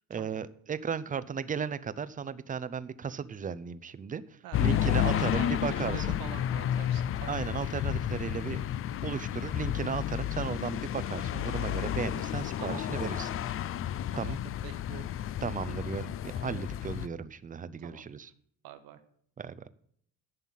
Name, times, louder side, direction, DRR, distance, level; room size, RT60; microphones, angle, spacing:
voice 1, 0.1-6.2 7.3-8.6 9.0-13.3 14.2-14.4 15.4-18.3 19.4-19.6, right 6 dB, 25° right, 15 dB, 0.6 m, -35 dB
voice 2, 4.4-7.7 12.6-13.6 14.1-15.1 17.8-18.3 18.6-19.0, right 11 dB, 85° right, 9 dB, 1.4 m, -47 dB
sound 1, 4.5-17.1, left 11 dB, 40° left, 0.4 m, -31 dB
11.0 x 5.6 x 7.5 m, 0.64 s
cardioid pair, 125°, 34 cm